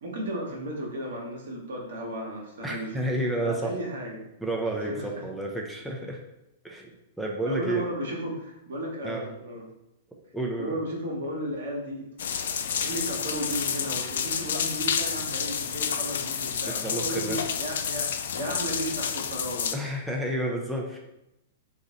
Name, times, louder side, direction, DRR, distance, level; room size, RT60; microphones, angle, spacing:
voice 1, 0.0-4.3 4.7-5.2 7.4-9.7 10.6-12.1 12.6-19.7, equal, 65° right, 0 dB, 1.0 m, -35 dB
voice 2, 2.6-3.7 4.4-6.2 6.6-7.9 9.0-9.2 10.3-10.8 16.6-17.4 19.7-21.0, right 1 dB, ahead, -2 dB, 0.6 m, -30 dB
sound 1, 12.2-19.7, left 7 dB, 65° left, 0.3 m, -30 dB
4.0 x 2.5 x 3.9 m, 0.87 s
figure-of-eight pair, 105°, 0 cm